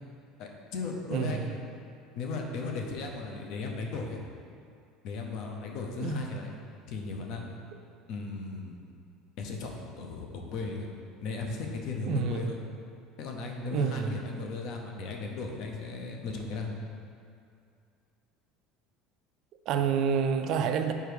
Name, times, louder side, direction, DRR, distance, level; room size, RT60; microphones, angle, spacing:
voice 1, 0.4-1.5 2.2-4.2 5.0-6.5 6.9-7.5 8.1-8.8 9.4-10.9 11.2-12.6 13.2-16.7, left 3 dB, 55° left, 2 dB, 0.7 m, -36 dB
voice 2, 1.1-1.5 6.0-6.2 12.1-12.5 13.7-14.1 19.7-20.9, right 7 dB, 45° right, 7 dB, 0.3 m, -28 dB
4.7 x 4.4 x 5.1 m, 2.4 s
cardioid pair, 160°, 0 cm